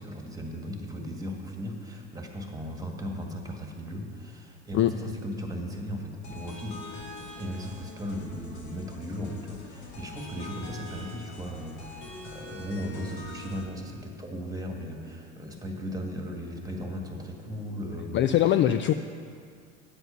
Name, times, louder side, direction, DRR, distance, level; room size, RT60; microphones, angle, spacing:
voice 1, 0.0-7.1 7.4-18.3, equal, 10° right, 2 dB, 1.7 m, -37 dB
sound 1, 6.2-13.6, left 2 dB, 75° left, 2.1 m, -44 dB
voice 2, 18.1-18.9, left 12 dB, 35° left, 9 dB, 0.4 m, -22 dB
9.7 x 8.0 x 5.6 m, 2.2 s
hypercardioid pair, 80°, 35 cm